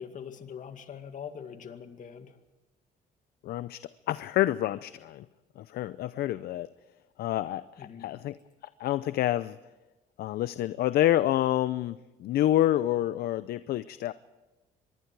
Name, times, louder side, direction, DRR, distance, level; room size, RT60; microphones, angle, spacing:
voice 1, 0.0-2.4 7.8-8.1, left 7 dB, 50° left, 7 dB, 2.2 m, -42 dB
voice 2, 3.4-3.8 4.1-5.3 5.6-6.7 7.2-8.4 8.8-9.6 10.2-14.1, left 13 dB, 65° left, 14 dB, 0.6 m, -28 dB
24.0 x 22.5 x 4.8 m, 1.1 s
cardioid pair, 110°, 17 cm